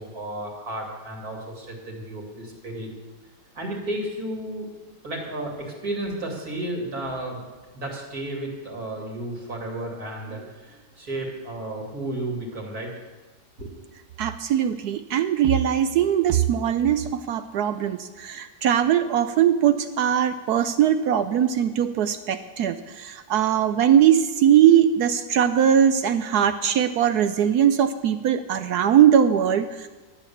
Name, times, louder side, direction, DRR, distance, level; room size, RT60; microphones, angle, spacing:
voice 1, 0.0-2.9 3.5-4.7 5.0-7.4 7.7-12.9 13.6-13.7, right 1 dB, 55° right, -1 dB, 2.9 m, -33 dB
voice 2, 14.2-29.9, right 9 dB, 70° right, 11 dB, 1.0 m, -20 dB
12.5 x 8.9 x 7.0 m, 1.3 s
omnidirectional pair, 1.9 m